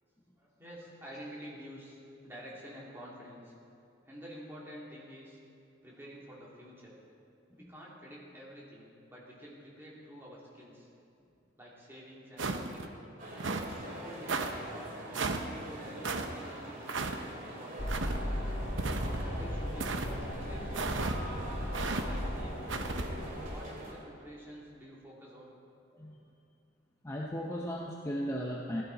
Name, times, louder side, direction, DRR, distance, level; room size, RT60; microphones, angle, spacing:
voice 1, 0.4-2.0 2.2-3.5 4.0-5.4 5.8-7.0 7.6-10.9 11.6-13.2 13.8-14.9 15.5-17.9 19.0-20.8 21.7-22.6 23.5-25.5, equal, 10° right, -5 dB, 2.6 m, -49 dB
sound 1, 12.4-12.9 13.4-13.7 14.3-14.5 15.1-15.5 16.0-16.3 16.9-17.2 17.9-18.2 18.8-19.3 19.8-20.1 20.7-21.2 21.7-22.0 22.7-23.1, right 3 dB, 75° right, 0.8 m, -34 dB
sound 2, 13.2-23.9, right 1 dB, 45° right, 2.4 m, -44 dB
sound 3, 17.8-23.5, equal, 50° left, 1.7 m, -37 dB
voice 2, 27.0-28.8, equal, 15° left, -2 dB, 0.7 m, -36 dB
16.5 x 12.5 x 4.0 m, 2.5 s
head